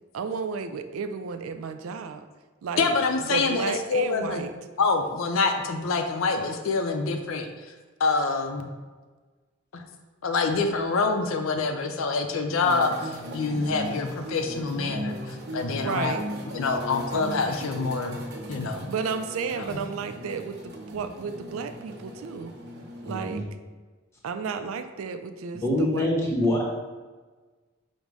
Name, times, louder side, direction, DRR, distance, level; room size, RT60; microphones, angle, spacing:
voice 1, 0.1-2.3 2.6-2.9 3.2-4.5 15.8-16.2 18.9-22.5 23.0-23.4 24.2-26.6, right 5 dB, 85° right, 9 dB, 0.3 m, -33 dB
voice 2, 2.8-4.4 4.8-7.5 8.0-8.7 9.7-9.8 10.2-16.2 16.5-18.2 18.5-18.9 19.5-19.8, left 4 dB, 75° left, 5 dB, 0.5 m, -26 dB
sound 1, 12.6-23.3, equal, 50° right, 0.8 m, -38 dB
voice 3, 23.0-23.4 25.6-26.6, left 1 dB, 15° left, -3 dB, 0.8 m, -24 dB
5.2 x 2.1 x 4.6 m, 1.3 s
head